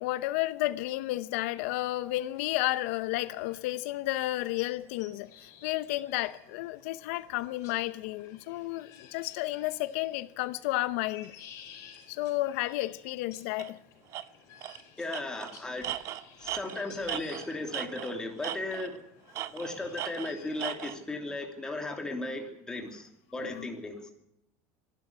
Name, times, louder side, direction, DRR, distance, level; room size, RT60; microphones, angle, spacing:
voice 1, 0.0-11.3 12.1-13.8 23.4-23.7, left 17 dB, 75° left, 0.7 m, -32 dB
sound 1, 1.6-21.1, left 7 dB, 45° left, 4.8 m, -55 dB
Tools, 13.6-13.7 14.1-14.2 14.6-14.8 15.1-18.1 18.4-19.0 19.3-21.0, right 13 dB, 45° right, 0.8 m, -37 dB
voice 2, 15.0-16.0 16.4-19.0 19.5-24.1, left 2 dB, 10° left, 3.0 m, -36 dB
23.5 x 12.0 x 9.6 m
cardioid pair, 150°, 7 cm